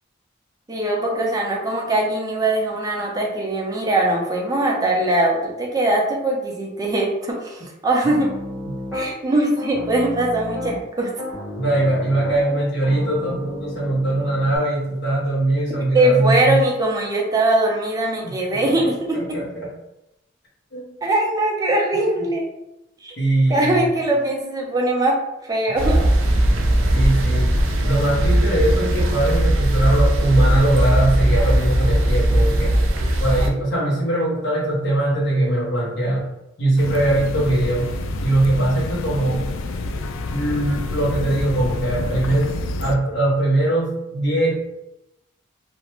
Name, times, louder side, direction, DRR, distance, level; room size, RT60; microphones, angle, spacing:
voice 1, 0.7-8.3 8.9-11.1 15.9-19.2 21.0-22.5 23.0-23.1 23.5-25.2 25.5-26.0, right 1 dB, 20° right, -1 dB, 0.5 m, -21 dB
Piano, 8.1-9.1 9.6-10.8 11.2-14.6, left 1 dB, 5° left, 0.9 m, -33 dB
voice 2, 11.6-16.6 18.2-18.3 18.6-19.7 20.7-20.9 23.2-23.9 26.9-32.7 33.2-36.3 36.6-37.9 38.2-39.5 40.3-44.6, right 1 dB, 60° left, -6 dB, 0.9 m, -21 dB
sound 1, 25.8-33.5, right 1 dB, 85° right, 0.4 m, -18 dB
sound 2, 36.8-43.0, left 2 dB, 85° left, 0.3 m, -28 dB
2.5 x 2.1 x 3.0 m, 0.88 s
head